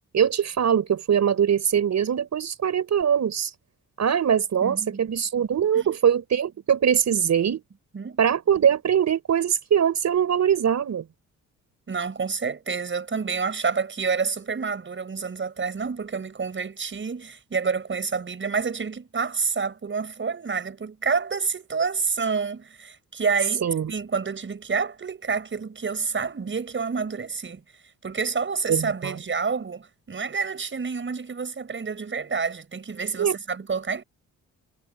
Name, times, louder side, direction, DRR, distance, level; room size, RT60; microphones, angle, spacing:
voice 1, 0.1-3.5 4.0-7.6 8.2-11.0 23.6-23.9 28.7-29.2 33.2-33.4, right 8 dB, 55° right, 5.3 m, -22 dB
voice 2, 4.6-5.1 5.7-5.9 7.9-8.2 11.9-27.6 28.0-34.0, right 5 dB, 35° right, 6.2 m, -28 dB
cardioid pair, 90°, 32 cm